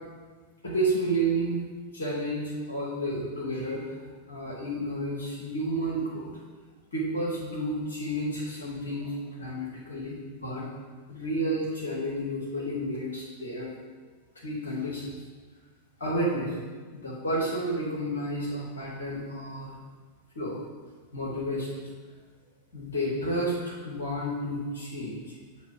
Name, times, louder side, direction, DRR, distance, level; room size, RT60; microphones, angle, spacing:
voice 1, 0.6-1.6 1.9-3.9 4.3-6.3 6.9-10.7 11.1-13.7 14.3-15.1 16.0-16.6 16.9-19.7 20.3-20.6 21.1-21.8 22.7-25.3, right 1 dB, 70° left, -5 dB, 1.0 m, -31 dB
7.9 x 2.8 x 4.9 m, 1.5 s
figure-of-eight pair, 90°, 0 cm